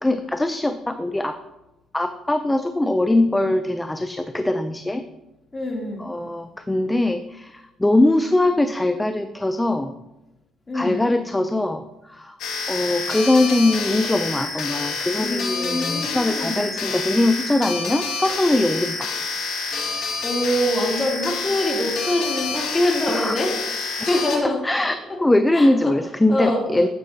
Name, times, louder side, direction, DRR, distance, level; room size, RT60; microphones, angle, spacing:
voice 1, 0.0-1.3 1.9-5.0 6.0-9.9 10.7-11.8 12.1-12.4 12.7-19.1 23.1-23.3 24.6-26.9, left 2 dB, 15° left, 9 dB, 0.5 m, -21 dB
voice 2, 5.5-6.1 10.7-11.0 15.2-16.8 19.7-23.5 24.0-24.6 25.5-25.9 26.3-26.6, left 1 dB, 30° left, -1 dB, 2.9 m, -25 dB
sound 1, 12.4-24.4, left 4 dB, 75° left, 1.4 m, -28 dB
9.8 x 7.5 x 2.8 m, 0.97 s
supercardioid pair, 65°, 0 cm